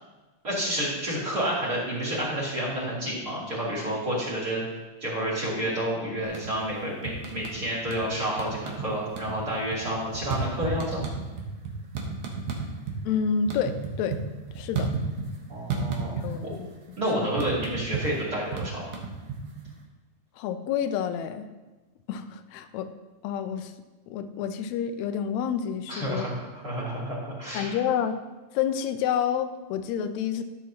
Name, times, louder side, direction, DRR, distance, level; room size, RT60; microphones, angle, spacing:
voice 1, 0.4-4.6 5.0-11.0 15.5-16.1 17.0-19.0 25.9-27.8, right 1 dB, 30° right, -4 dB, 3.0 m, -30 dB
sound 1, 6.2-6.7 7.1-8.1 8.4-8.9 9.1-13.0 13.3-15.4 15.7-16.6 16.8-19.7, right 5 dB, 70° right, 2.4 m, -32 dB
voice 2, 13.1-14.2 14.6-14.9 16.2-17.3 20.4-21.5 22.1-22.9 23.2-23.7 24.1-26.3 27.5-28.2 28.5-30.4, left 8 dB, 80° left, 10 dB, 1.8 m, -29 dB
14.0 x 7.4 x 2.8 m, 1.2 s
omnidirectional pair, 3.3 m